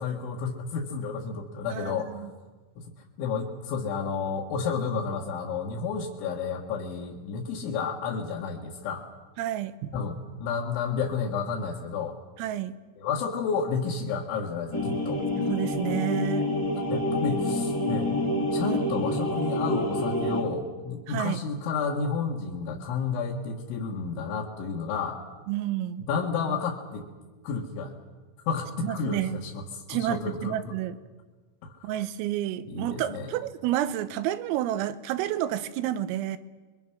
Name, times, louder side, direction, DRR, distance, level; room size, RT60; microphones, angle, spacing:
voice 1, 0.0-2.2 3.2-9.0 9.9-12.2 13.0-15.2 16.9-18.1 18.5-25.2 26.1-27.0 27.4-27.9 28.5-29.6 29.9-30.8 31.6-31.7 32.7-33.4, left 5 dB, 70° left, -4 dB, 4.1 m, -31 dB
voice 2, 1.7-2.3 9.4-9.9 12.4-12.8 15.4-16.5 18.6-18.9 21.1-21.4 25.5-26.0 28.8-29.4 29.9-31.0 31.8-36.4, right 12 dB, 85° right, 12 dB, 3.7 m, -30 dB
sound 1, 14.7-20.4, left 1 dB, 10° left, 0.9 m, -27 dB
30.0 x 23.0 x 6.3 m, 1.3 s
omnidirectional pair, 5.9 m